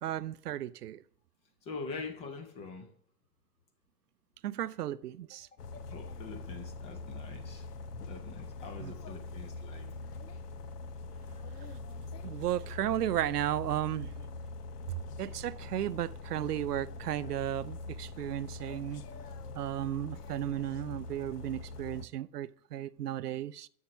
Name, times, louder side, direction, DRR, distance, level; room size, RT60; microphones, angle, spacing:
voice 1, 0.0-1.0 4.4-5.5 8.8-8.9 12.2-14.1 14.9-19.0 19.5-23.7, right 12 dB, 75° right, 0.5 m, -34 dB
voice 2, 1.6-2.9 5.9-7.7 7.9-9.9, left 4 dB, 15° left, 0.5 m, -44 dB
sound 1, 5.6-22.1, left 3 dB, 75° left, 0.8 m, -43 dB
7.2 x 6.6 x 6.0 m
hypercardioid pair, 115°, 47 cm